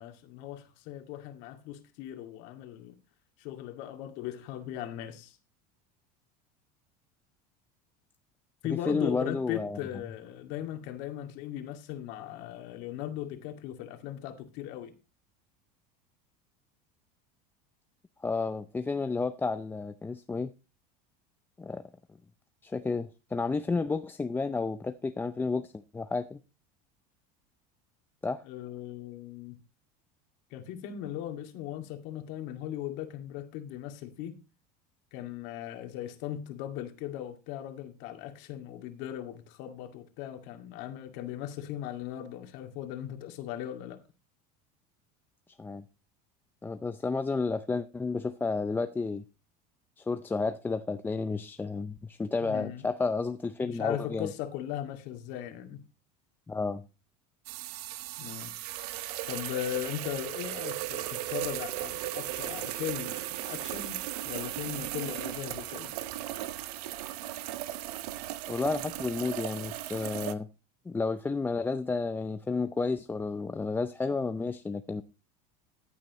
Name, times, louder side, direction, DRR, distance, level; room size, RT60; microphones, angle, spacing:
voice 1, 0.0-3.0 3.4-5.4 8.6-14.9 28.4-29.6 30.5-34.4 35.1-44.0 52.4-52.8 53.6-55.8 58.2-58.5 59.3-64.0 64.2-65.9, left 11 dB, 65° left, 2.2 m, -38 dB
voice 2, 8.9-9.8 18.2-20.5 21.6-21.8 22.6-26.4 28.2-28.4 45.6-45.8 46.6-49.2 50.0-54.3 56.5-56.9 68.5-70.5 70.9-75.0, left 4 dB, 10° left, 0.5 m, -31 dB
sound 1, 57.5-70.3, right 14 dB, 80° right, 1.0 m, -37 dB
14.5 x 8.6 x 3.0 m
supercardioid pair, 125°, 20 cm